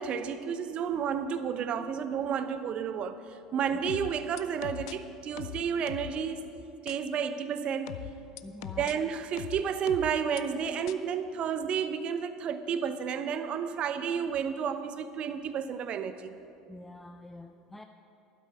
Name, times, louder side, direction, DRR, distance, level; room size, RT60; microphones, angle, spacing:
voice 1, 0.0-6.5 6.8-8.0 8.8-16.4, right 7 dB, 45° right, 12 dB, 0.8 m, -31 dB
sound 1, 3.9-4.9 5.4-6.2 6.9-7.0 7.9-8.9 9.4-10.4 10.9-11.0, left 14 dB, 70° left, 0.5 m, -40 dB
voice 2, 8.4-8.9 16.7-17.8, left 1 dB, 5° left, 5 dB, 0.6 m, -46 dB
12.0 x 12.0 x 5.3 m, 2.7 s
hypercardioid pair, 70°, 3 cm